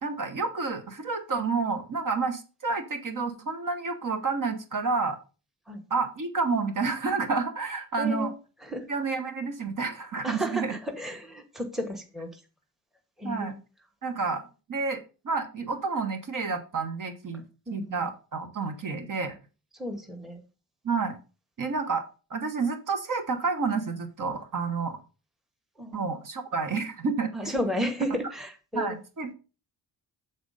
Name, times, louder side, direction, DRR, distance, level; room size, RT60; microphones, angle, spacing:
voice 1, 0.0-5.2 5.9-8.3 8.9-10.7 13.2-13.5 14.0-14.4 14.7-17.4 17.7-19.4 20.8-21.2 21.6-22.0 22.3-25.0 25.9-27.3 28.7-29.3, right 4 dB, 50° right, 6 dB, 1.3 m, -29 dB
voice 2, 8.0-8.3 8.6-8.9 10.2-12.4 13.2-13.6 17.7-18.1 19.7-20.4 25.8-26.0 27.3-29.0, equal, ahead, 4 dB, 1.1 m, -33 dB
7.8 x 4.1 x 5.5 m, 0.33 s
wide cardioid pair, 125°, 42 cm